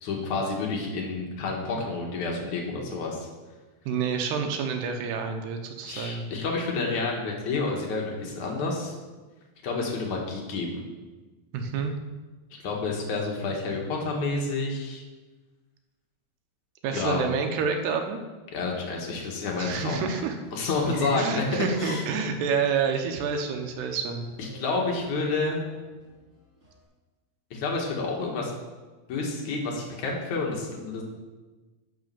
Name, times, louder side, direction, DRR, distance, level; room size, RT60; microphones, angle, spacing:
voice 1, 0.0-3.3 5.9-8.9 9.6-10.8 12.6-15.0 16.9-17.2 18.5-20.0 20.5-21.4 21.8-22.0 24.4-25.7 27.5-28.5 29.1-31.0, left 3 dB, 55° left, -1 dB, 2.3 m, -29 dB
voice 2, 3.9-6.3 11.5-11.9 16.8-18.2 19.6-20.4 21.2-24.3, right 5 dB, 75° right, 4 dB, 2.8 m, -28 dB
Laughter, 19.4-26.8, left 1 dB, 15° right, 3.3 m, -47 dB
10.5 x 6.2 x 6.9 m, 1.2 s
omnidirectional pair, 5.2 m